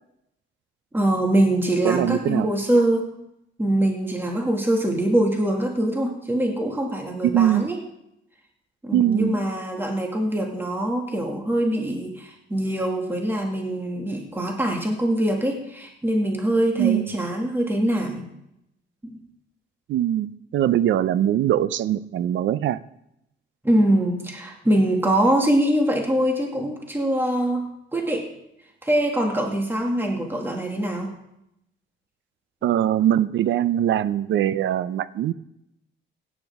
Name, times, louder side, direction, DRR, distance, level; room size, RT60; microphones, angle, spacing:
voice 1, 0.9-3.1 3.6-7.8 8.8-18.2 19.0-19.2 23.6-27.6 27.9-28.3 28.8-31.1, right 1 dB, 10° right, 1 dB, 2.1 m, -23 dB
voice 2, 1.8-2.5 7.2-7.7 8.9-9.4 16.8-17.1 19.9-22.8 32.6-35.3, right 11 dB, 70° right, 16 dB, 0.6 m, -22 dB
16.5 x 10.0 x 3.6 m, 0.81 s
cardioid pair, 90°, 20 cm